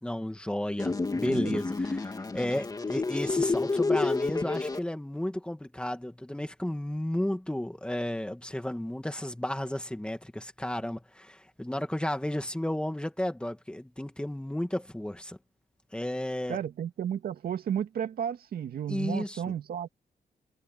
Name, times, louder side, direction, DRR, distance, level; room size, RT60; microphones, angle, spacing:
voice 1, 0.0-15.4 15.9-16.6 18.9-19.4, left 1 dB, 5° left, 2.4 m, -33 dB
sound 1, 0.8-4.8, left 3 dB, 25° left, 3.8 m, -29 dB
voice 2, 1.2-1.6 16.5-19.9, right 9 dB, 75° right, 2.3 m, -33 dB
cardioid pair, 110°, 16 cm